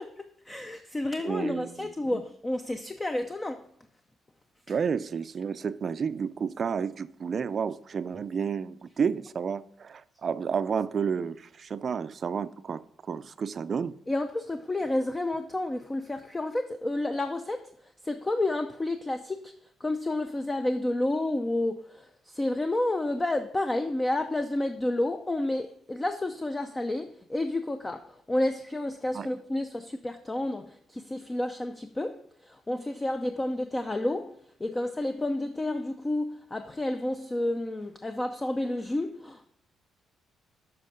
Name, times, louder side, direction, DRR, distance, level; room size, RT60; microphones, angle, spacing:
voice 1, 0.0-3.7 14.1-39.5, left 1 dB, 20° left, 0.5 m, -30 dB
voice 2, 1.2-2.2 4.7-13.9 29.1-29.3, right 6 dB, 45° right, 0.4 m, -31 dB
8.0 x 5.4 x 5.1 m
cardioid pair, 90°, 0 cm